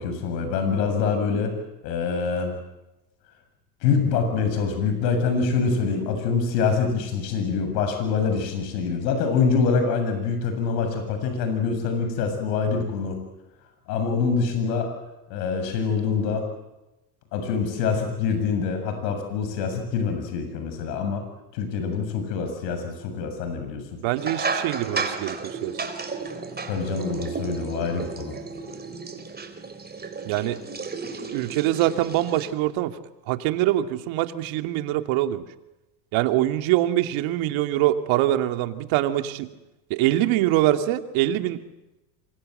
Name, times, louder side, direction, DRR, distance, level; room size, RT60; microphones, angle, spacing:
voice 1, 0.0-1.5 1.8-2.5 3.8-13.2 13.9-14.9 15.3-16.4 17.3-21.3 21.5-23.8 26.7-28.3, left 5 dB, 80° left, 6 dB, 7.5 m, -25 dB
voice 2, 24.0-25.7 30.3-30.6 31.3-33.0 33.3-35.4 36.1-39.5 39.9-41.6, right 14 dB, 65° right, 8 dB, 2.5 m, -24 dB
sound 1, 24.2-32.5, right 4 dB, 20° right, 3.9 m, -33 dB
27.5 x 24.0 x 7.9 m, 0.98 s
supercardioid pair, 95°, 50 cm